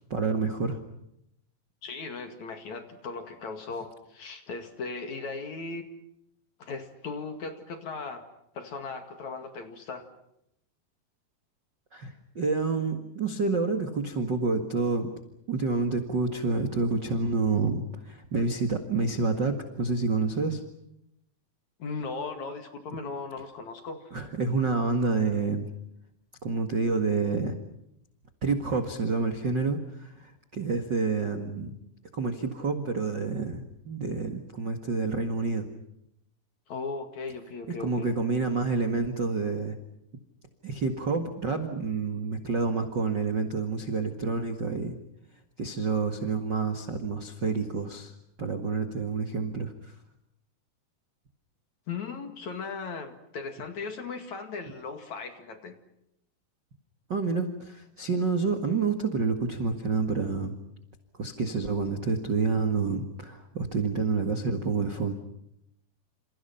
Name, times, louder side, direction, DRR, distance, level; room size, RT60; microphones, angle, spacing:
voice 1, 0.1-0.8 11.9-15.1 15.5-20.6 24.1-25.7 26.4-27.6 28.4-31.7 32.1-35.6 37.8-39.7 40.6-45.0 45.6-48.1 48.4-49.9 57.1-60.5 61.2-65.1, right 4 dB, 45° right, 6 dB, 1.4 m, -28 dB
voice 2, 1.8-5.8 6.6-8.3 8.5-10.1 21.8-24.0 36.7-38.1 51.9-55.7, left 4 dB, 50° left, 7 dB, 2.9 m, -37 dB
29.5 x 28.5 x 5.8 m, 0.78 s
omnidirectional pair, 4.9 m